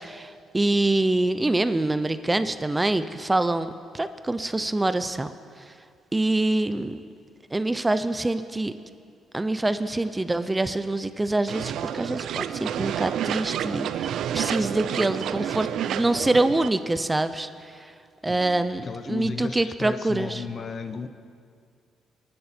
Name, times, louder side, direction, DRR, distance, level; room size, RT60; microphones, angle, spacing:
voice 1, 0.0-5.3 6.1-7.0 7.5-8.7 9.3-17.5 17.8-17.9 18.2-20.4, right 2 dB, 15° right, 11 dB, 0.6 m, -25 dB
sound 1, 11.5-16.7, right 10 dB, 75° right, 0.4 m, -29 dB
voice 2, 18.3-21.1, left 5 dB, 50° left, 10 dB, 0.9 m, -35 dB
23.5 x 11.5 x 4.4 m, 2.2 s
cardioid pair, 90°, 0 cm